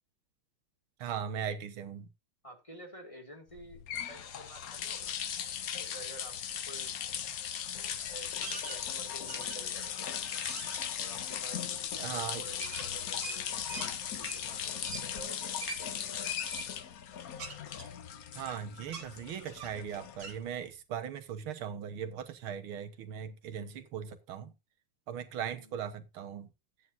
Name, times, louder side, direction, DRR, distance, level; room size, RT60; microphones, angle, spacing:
voice 1, 1.0-2.1 12.0-12.4 18.3-24.5 25.1-26.5, right 8 dB, 90° right, 2.1 m, -39 dB
voice 2, 2.4-5.2 5.7-6.4 6.6-7.0 8.0-8.3 8.7-10.4 11.0-16.3 23.4-23.8 25.5-25.8, right 1 dB, 15° left, 2.2 m, -51 dB
sound 1, 3.5-20.6, left 9 dB, 60° left, 1.1 m, -38 dB
sound 2, 8.4-8.8 9.3-9.8 10.2-10.8 12.6-13.9 14.2-14.4 14.8-15.1 15.6-15.8 16.4-16.7 17.4-18.5 18.9-19.1 19.6-19.8 20.2-20.4, right 4 dB, 50° right, 2.1 m, -43 dB
14.0 x 9.3 x 2.6 m
omnidirectional pair, 2.2 m